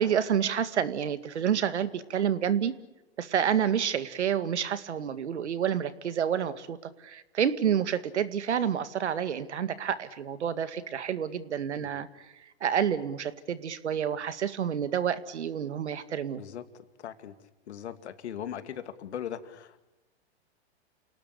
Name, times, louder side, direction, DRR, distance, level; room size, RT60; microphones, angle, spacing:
voice 1, 0.0-2.7 3.2-12.1 12.6-16.4, right 8 dB, 85° right, 13 dB, 2.1 m, -29 dB
voice 2, 16.4-17.3 17.7-19.8, left 9 dB, 75° left, 10 dB, 2.6 m, -39 dB
29.0 x 18.5 x 9.9 m, 1.0 s
hypercardioid pair, 120°, 33 cm